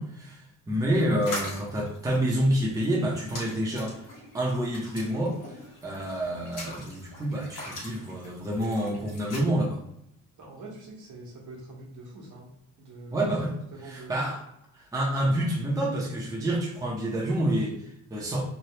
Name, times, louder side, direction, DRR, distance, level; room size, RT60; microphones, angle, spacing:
voice 1, 0.0-4.0 4.3-9.8 13.1-13.5 13.9-14.4 14.7-18.4, right 1 dB, 10° right, -3 dB, 0.6 m, -28 dB
sound 1, 1.2-9.4, left 1 dB, 85° left, 1.2 m, -42 dB
voice 2, 10.4-12.5 12.8-13.3 13.7-14.3, right 2 dB, 70° right, -3 dB, 1.2 m, -44 dB
3.2 x 2.2 x 2.8 m, 0.77 s
cardioid pair, 135°, 31 cm